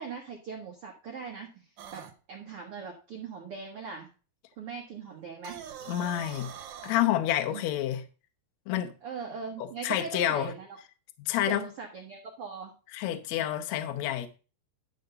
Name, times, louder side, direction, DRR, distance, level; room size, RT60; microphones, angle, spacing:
voice 1, 0.0-1.6 1.9-4.1 4.6-5.6 7.5-7.6 9.0-10.7 11.5-12.7, right 5 dB, 85° right, 1.2 m, -40 dB
sound 1, 1.8-2.1 5.3-7.0, right 9 dB, 65° right, 2.3 m, -43 dB
voice 2, 5.9-6.5 6.8-8.0 8.7-8.9 9.6-10.5 11.2-11.7 12.9-14.3, left 12 dB, 80° left, 1.6 m, -29 dB
11.5 x 4.0 x 6.7 m
omnidirectional pair, 4.6 m